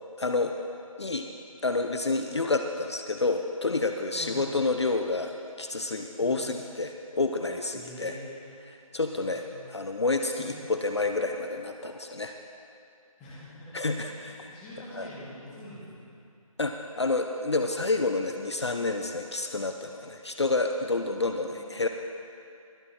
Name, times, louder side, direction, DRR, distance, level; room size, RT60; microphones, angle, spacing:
voice 1, 0.2-0.5 1.0-1.3 1.6-8.2 8.7-12.3 13.7-14.5 14.9-15.1 16.6-21.9, left 3 dB, 50° left, 5 dB, 0.7 m, -29 dB
voice 2, 4.1-4.4 6.2-6.4 7.7-8.3 9.2-9.6 10.4-10.5 13.2-13.7 14.0-16.0 21.2-21.9, left 1 dB, 5° left, -8 dB, 1.3 m, -46 dB
21.5 x 8.5 x 4.3 m, 2.6 s
figure-of-eight pair, 165°, 18 cm